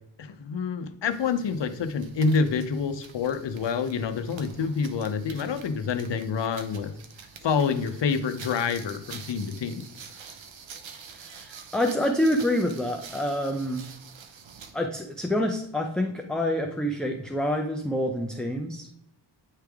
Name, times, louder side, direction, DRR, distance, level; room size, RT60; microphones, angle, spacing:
voice 1, 0.2-6.9 7.4-9.8, left 5 dB, 65° left, 8 dB, 0.7 m, -27 dB
sound 1, 1.1-14.8, right 6 dB, 75° right, 0.8 m, -47 dB
voice 2, 11.1-13.8 14.7-18.9, left 1 dB, ahead, 2 dB, 0.5 m, -27 dB
9.0 x 3.3 x 3.5 m, 0.77 s
wide cardioid pair, 65°, 46 cm